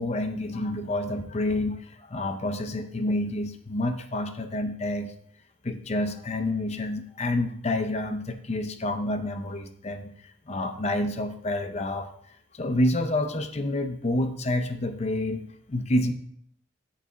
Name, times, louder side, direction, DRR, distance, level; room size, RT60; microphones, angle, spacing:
voice 1, 0.0-5.1 5.6-12.1 12.5-15.4 15.7-16.1, left 1 dB, 35° left, 8 dB, 0.6 m, -28 dB
8.4 x 4.1 x 5.9 m, 0.67 s
head